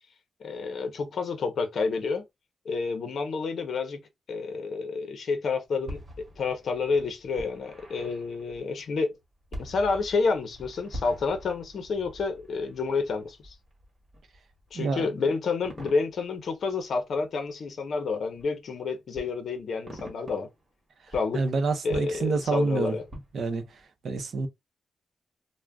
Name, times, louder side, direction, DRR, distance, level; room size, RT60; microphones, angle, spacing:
voice 1, 0.4-2.2 2.7-4.0 4.3-6.0 6.4-9.1 9.6-13.5 14.7-20.5 21.1-21.4 21.8-23.0, left 4 dB, 55° left, 0.6 m, -29 dB
sound 1, 5.7-17.7 18.4-18.5 19.1-20.7 21.0-23.8, equal, 30° right, 1.0 m, -45 dB
voice 2, 14.7-15.1 21.3-23.0 23.3-23.6 24.0-24.5, right 4 dB, 55° right, 0.6 m, -27 dB
2.4 x 2.1 x 3.3 m
wide cardioid pair, 180°, 0 cm